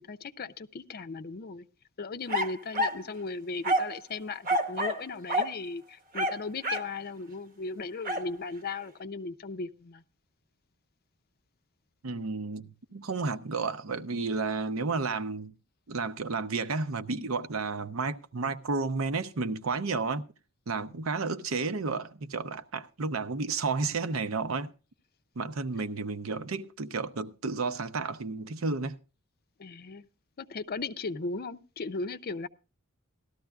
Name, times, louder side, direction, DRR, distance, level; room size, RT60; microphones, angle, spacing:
voice 1, 0.0-1.7 2.0-10.0 25.8-25.9 29.6-30.1 30.4-32.5, left 3 dB, 45° left, 0.5 m, -37 dB
sound 1, 2.3-3.0 3.6-4.0 4.4-5.0 5.3-5.5 6.1-6.9 8.0-8.3, equal, 40° right, 0.9 m, -28 dB
voice 2, 12.0-15.5 15.9-20.3 20.7-24.7 25.4-29.0, right 4 dB, 70° right, 0.7 m, -32 dB
18.0 x 13.0 x 2.3 m
head